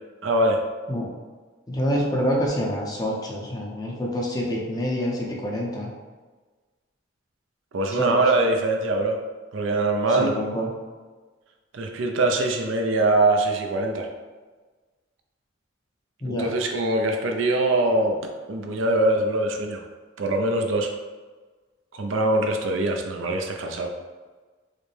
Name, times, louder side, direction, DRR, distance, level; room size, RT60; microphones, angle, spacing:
voice 1, 0.2-0.6 7.7-9.2 9.5-10.4 11.7-14.1 16.2-18.2 18.5-19.8 20.2-20.9 21.9-23.9, right 2 dB, 85° right, 3 dB, 0.5 m, -23 dB
voice 2, 1.7-5.9 8.0-8.2 10.2-10.7 16.2-16.5, equal, 20° left, -2 dB, 0.6 m, -26 dB
4.9 x 2.1 x 3.2 m, 1.4 s
head